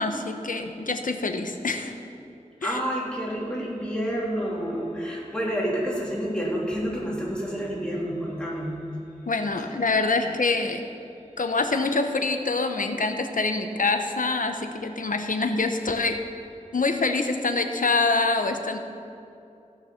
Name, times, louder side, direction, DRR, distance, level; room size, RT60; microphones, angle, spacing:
voice 1, 0.0-1.9 2.6-2.8 9.3-10.8 11.4-16.2 16.7-18.8, left 3 dB, 75° left, 6 dB, 0.9 m, -25 dB
voice 2, 2.6-8.7, equal, 5° left, -6 dB, 3.3 m, -29 dB
16.0 x 6.6 x 5.8 m, 2.7 s
wide cardioid pair, 50°, 14 cm